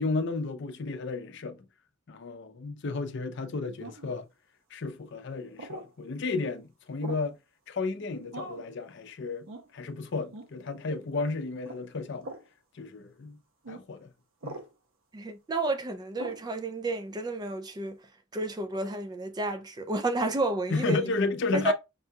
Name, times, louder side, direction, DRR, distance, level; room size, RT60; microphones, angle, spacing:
voice 1, 0.0-1.6 2.1-4.2 4.7-7.4 7.7-12.3 12.7-13.4 13.7-14.1 14.4-14.6 20.7-21.7, left 3 dB, 60° left, 0.5 m, -33 dB
sound 1, 3.8-4.2 5.6-5.9 7.0-7.3 8.3-8.7 9.5-9.7 10.3-10.5 11.6-11.8 12.2-12.5 13.6-13.8 14.4-14.7 16.2-16.5, right 2 dB, 80° right, 0.7 m, -41 dB
voice 2, 15.1-18.0 18.3-21.0 21.5-21.7, right 2 dB, 20° right, 0.3 m, -31 dB
5.4 x 2.3 x 2.7 m
head